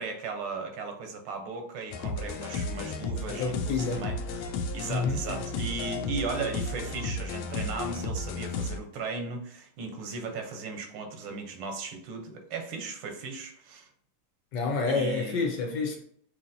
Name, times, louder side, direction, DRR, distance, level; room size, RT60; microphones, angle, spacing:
voice 1, 0.0-13.9 14.9-15.4, right 4 dB, 85° right, 1.8 m, -37 dB
sound 1, 1.9-8.8, left 3 dB, 80° left, 1.4 m, -33 dB
voice 2, 3.4-4.1 4.9-5.2 14.5-16.0, left 4 dB, 65° left, 1.4 m, -28 dB
5.4 x 3.1 x 2.6 m
omnidirectional pair, 2.3 m